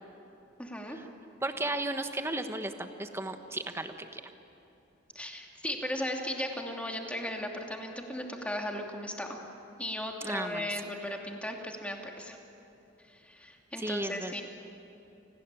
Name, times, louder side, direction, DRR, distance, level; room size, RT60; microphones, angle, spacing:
voice 1, 0.6-1.0 5.1-9.4 9.8-12.4 13.1-14.4, left 1 dB, 5° left, 1 dB, 2.8 m, -36 dB
voice 2, 1.4-4.2 10.2-10.7 13.8-14.4, right 1 dB, 15° right, 7 dB, 1.3 m, -34 dB
29.0 x 19.5 x 9.0 m, 2.9 s
head